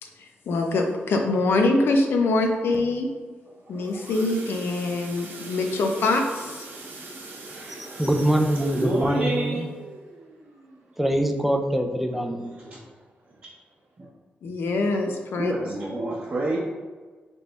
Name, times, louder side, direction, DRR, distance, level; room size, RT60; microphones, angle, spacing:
voice 1, 0.0-3.1 3.7-6.7 14.4-15.5, left 2 dB, 80° left, 3 dB, 0.6 m, -24 dB
sound 1, 3.5-12.1 12.6-12.8 13.1-13.2 13.7-13.8, right 2 dB, 70° right, 0.9 m, -42 dB
voice 2, 7.7-9.7 11.0-12.5, right 1 dB, 5° right, 4 dB, 0.4 m, -24 dB
voice 3, 8.5-9.7 12.6-12.8 14.0-14.1 15.4-16.6, right 2 dB, 35° right, -5 dB, 0.8 m, -28 dB
3.3 x 3.3 x 4.0 m, 1.4 s
cardioid pair, 90°, 4 cm